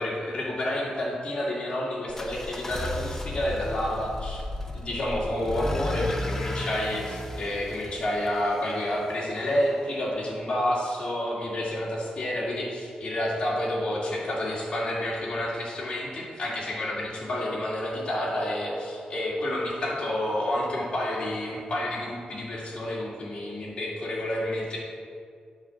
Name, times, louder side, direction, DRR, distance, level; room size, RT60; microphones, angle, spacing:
voice 1, 0.0-4.4 4.7-24.8, left 1 dB, 35° left, -5 dB, 2.4 m, -29 dB
sound 1, 2.1-9.0, left 1 dB, 15° left, 0.6 m, -34 dB
9.1 x 4.5 x 7.1 m, 2.2 s
wide cardioid pair, 165°, 3 cm